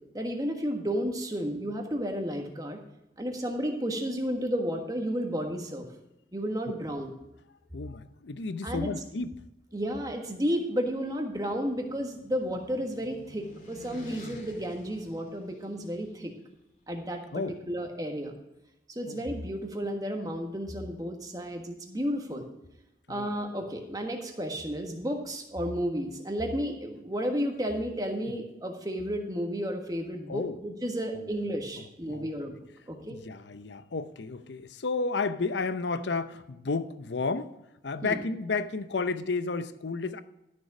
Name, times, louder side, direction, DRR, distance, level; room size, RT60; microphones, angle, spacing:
voice 1, 0.1-2.8 3.2-5.9 6.3-7.1 8.6-8.9 9.7-16.3 16.9-18.3 18.9-22.4 23.1-33.2 38.0-38.2, equal, 20° right, 3 dB, 1.5 m, -32 dB
voice 2, 7.7-9.4 17.3-17.6 19.1-19.3 23.1-23.3 28.3-28.4 30.3-30.6 31.1-31.3 31.8-32.3 33.1-37.6 37.8-40.2, left 4 dB, 85° left, 13 dB, 0.7 m, -32 dB
sound 1, 10.9-16.1, left 1 dB, 45° left, 2.0 m, -50 dB
12.5 x 6.8 x 4.9 m, 0.91 s
head